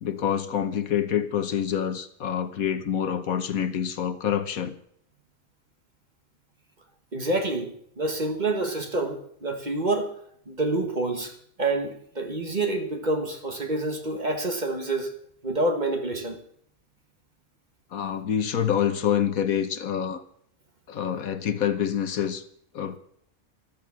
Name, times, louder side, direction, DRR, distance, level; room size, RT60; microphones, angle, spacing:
voice 1, 0.0-4.7 17.9-20.2 20.9-22.4 22.7-23.0, left 9 dB, 80° left, 1.6 m, -26 dB
voice 2, 7.1-10.1 10.5-15.1 15.4-16.4, right 2 dB, 30° right, 1.7 m, -27 dB
14.0 x 13.0 x 6.2 m
omnidirectional pair, 1.5 m